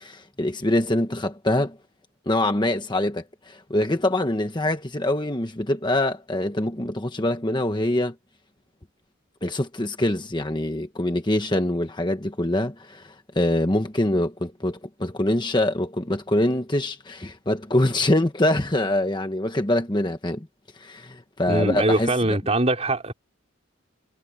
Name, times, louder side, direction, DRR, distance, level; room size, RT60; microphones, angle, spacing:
voice 1, 0.0-1.8 2.3-8.1 9.4-20.5 20.7-22.1, left 1 dB, 20° left, 1.1 m, -24 dB
voice 2, 21.5-23.1, right 1 dB, 30° right, 4.3 m, -22 dB
head